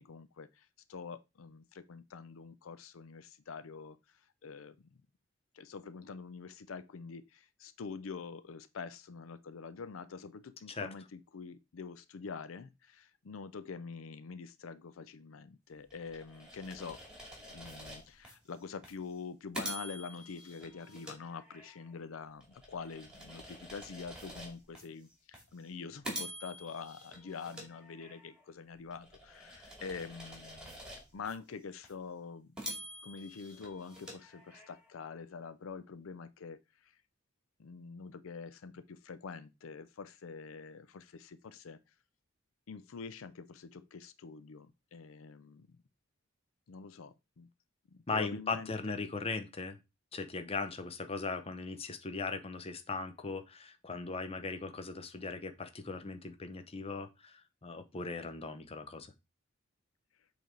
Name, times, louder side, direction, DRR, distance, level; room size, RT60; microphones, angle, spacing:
voice 1, 0.0-5.0 5.5-17.0 17.5-30.8 31.1-32.7 33.0-36.9 37.6-41.8 42.7-45.7 46.7-47.5 47.9-49.0, left 5 dB, 80° left, 0.5 m, -46 dB
sound 1, 15.9-18.3 18.8-19.0 19.5-21.9 22.4-24.8 25.3-25.5 26.0-28.4 28.9-31.3 31.8-31.9 32.6-34.9, right 1 dB, 5° right, 2.2 m, -47 dB
voice 2, 48.1-49.8 50.1-59.1, left 4 dB, 30° left, 0.7 m, -38 dB
7.8 x 3.5 x 3.7 m
head